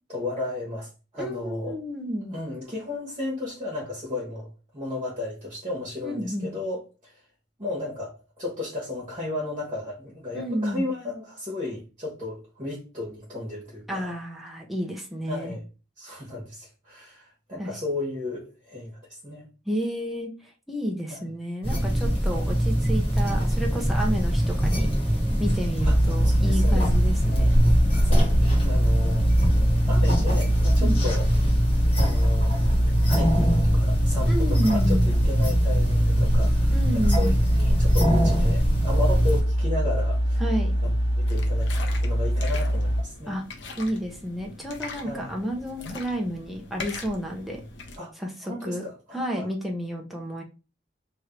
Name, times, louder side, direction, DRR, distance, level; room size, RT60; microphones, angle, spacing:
voice 1, 0.1-1.8 2.3-4.5 4.7-7.1 7.6-8.1 8.4-14.1 15.3-15.6 16.0-19.5 21.1-21.2 25.8-25.9 26.2-26.9 27.2-27.5 27.9-29.5 29.9-31.3 31.9-32.5 33.1-37.3 37.6-40.4 40.8-41.7 42.0-43.4 45.0-45.3 48.0-48.1 48.4-49.5, left 2 dB, 30° right, 1.4 m, -34 dB
voice 2, 1.2-2.3 6.0-6.5 10.3-10.9 13.9-15.5 17.6-17.7 19.7-20.3 20.7-27.6 30.8-31.0 34.3-35.1 36.7-37.4 40.4-40.7 43.3-43.4 43.8-47.6 48.2-48.8 49.1-50.4, equal, ahead, 0.7 m, -31 dB
sound 1, 21.6-39.4, equal, 30° left, 1.4 m, -23 dB
sound 2, 25.8-43.0, equal, 65° left, 1.6 m, -24 dB
sound 3, 41.3-48.0, left 3 dB, 85° left, 0.8 m, -41 dB
3.2 x 2.7 x 4.5 m
head